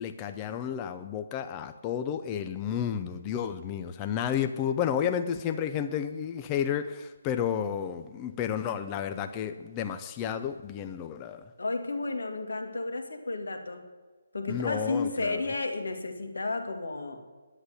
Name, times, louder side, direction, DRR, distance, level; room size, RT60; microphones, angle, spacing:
voice 1, 0.0-11.4 14.5-15.4, left 8 dB, 15° left, 0.4 m, -31 dB
voice 2, 11.6-13.9 14.3-17.2, left 3 dB, 90° left, 2.1 m, -32 dB
10.5 x 7.9 x 9.8 m
hypercardioid pair, 175°, 0 cm